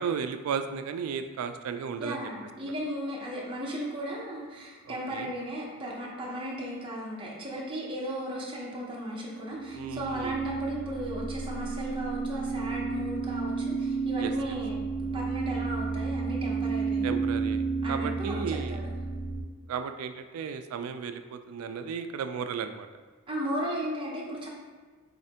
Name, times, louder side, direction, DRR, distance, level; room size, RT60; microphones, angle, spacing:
voice 1, 0.0-2.3 2.6-2.7 4.9-5.3 9.7-10.4 14.2-14.3 17.0-18.8 19.7-22.9, right 6 dB, 90° right, 13 dB, 0.3 m, -34 dB
voice 2, 2.0-17.2 17.8-18.9 23.3-24.5, equal, 25° right, -4 dB, 0.6 m, -36 dB
sound 1, 9.3-19.4, right 4 dB, 80° left, 1.3 m, -31 dB
4.1 x 3.2 x 2.8 m, 1.5 s
head